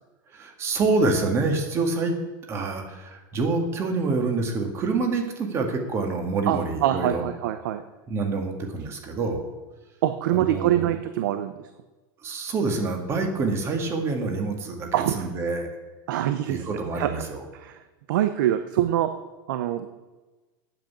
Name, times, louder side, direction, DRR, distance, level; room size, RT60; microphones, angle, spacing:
voice 1, 0.3-2.1 2.5-7.3 8.1-9.5 10.3-10.9 12.2-15.7 16.5-17.4, right 3 dB, 25° right, 4 dB, 1.8 m, -26 dB
voice 2, 6.5-7.8 10.0-11.5 14.9-15.3 16.1-16.6 17.0-17.1 17.5-17.8 18.1-19.1 19.5-19.9, right 12 dB, 80° right, 9 dB, 0.8 m, -24 dB
9.2 x 7.9 x 8.6 m, 1.2 s
supercardioid pair, 160°, 11 cm